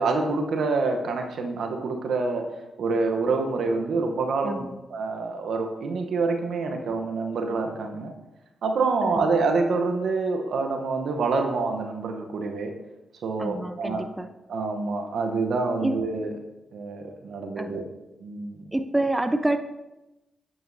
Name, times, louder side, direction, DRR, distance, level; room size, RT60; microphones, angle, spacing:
voice 1, 0.0-2.4 2.8-8.1 8.6-12.7 13.2-14.1 14.5-16.3 16.7-17.8 18.2-18.7, right 3 dB, 75° right, 4 dB, 0.8 m, -27 dB
voice 2, 4.4-4.8 9.0-9.3 13.4-14.3 15.8-15.9 17.6-17.9 18.7-19.6, right 1 dB, 15° right, 9 dB, 0.5 m, -27 dB
9.0 x 6.0 x 2.6 m, 1.0 s
supercardioid pair, 45°, 0 cm